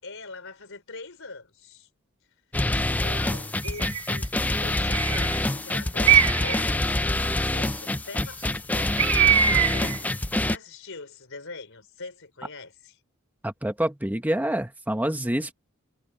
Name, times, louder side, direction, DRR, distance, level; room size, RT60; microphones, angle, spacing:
voice 1, 0.0-1.9 2.7-4.3 4.6-6.8 7.2-8.9 9.4-13.0, left 3 dB, 65° left, 4.7 m, -42 dB
sound 1, 2.5-10.6, left 1 dB, 5° left, 0.3 m, -26 dB
Bird, 3.6-4.1 4.9-5.4 6.0-6.6 9.0-10.0, right 9 dB, 70° right, 1.9 m, -22 dB
voice 2, 13.4-15.5, right 1 dB, 10° right, 1.0 m, -27 dB
head